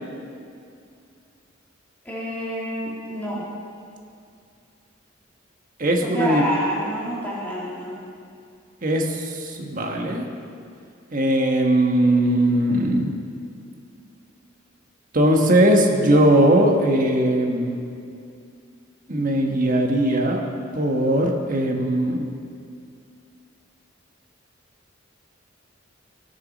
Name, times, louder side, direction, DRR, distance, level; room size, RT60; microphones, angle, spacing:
voice 1, 2.0-3.5 6.0-8.0, right 1 dB, 10° left, -8 dB, 2.4 m, -28 dB
voice 2, 5.8-6.4 8.8-10.3 11.1-13.1 15.1-17.8 19.1-20.4 20.7-22.3, right 1 dB, 45° right, 2 dB, 1.3 m, -19 dB
18.5 x 7.1 x 4.1 m, 2.4 s
head